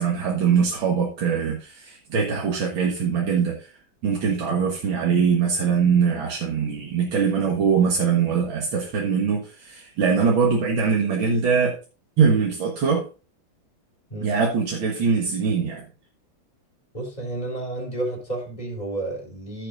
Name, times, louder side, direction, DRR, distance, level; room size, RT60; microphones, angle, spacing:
voice 1, 0.0-3.7 4.0-11.8 12.2-13.1 14.2-15.8, right 6 dB, 85° right, -1 dB, 2.3 m, -22 dB
voice 2, 16.9-19.7, right 2 dB, 20° left, 0 dB, 3.7 m, -31 dB
14.0 x 7.7 x 2.6 m, 0.33 s
omnidirectional pair, 2.1 m